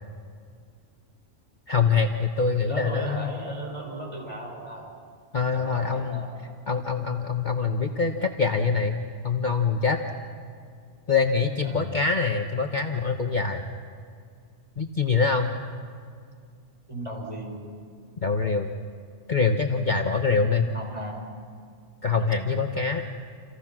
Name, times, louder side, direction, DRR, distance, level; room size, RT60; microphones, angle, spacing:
voice 1, 1.7-3.3 5.3-6.2 6.7-9.0 9.2-10.0 11.1-13.6 14.8-15.6 18.2-18.7 19.3-20.7 22.0-23.0, left 5 dB, 40° left, 4 dB, 1.2 m, -24 dB
voice 2, 2.7-4.9 5.5-6.3 11.6-12.0 16.9-17.6 20.3-21.2, right 1 dB, 25° right, -1 dB, 6.0 m, -36 dB
29.5 x 28.5 x 6.1 m, 2.1 s
omnidirectional pair, 1.3 m